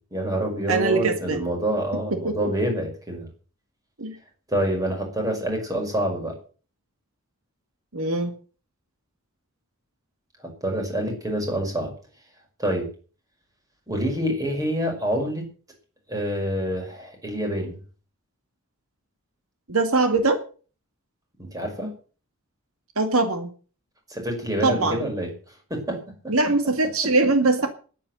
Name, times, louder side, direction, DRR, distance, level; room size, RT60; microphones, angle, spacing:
voice 1, 0.1-3.3 4.5-6.3 10.6-11.9 12.6-12.9 13.9-15.4 16.1-17.8 21.4-21.9 24.1-25.3 25.7-26.0 26.2-26.5, equal, 15° right, 2 dB, 5.7 m, -27 dB
voice 2, 0.7-1.4 2.1-2.4 4.0-4.2 7.9-8.3 19.7-20.4 23.0-23.5 24.6-25.1 26.3-27.7, right 3 dB, 75° right, 7 dB, 2.2 m, -22 dB
11.0 x 9.8 x 9.1 m, 0.39 s
head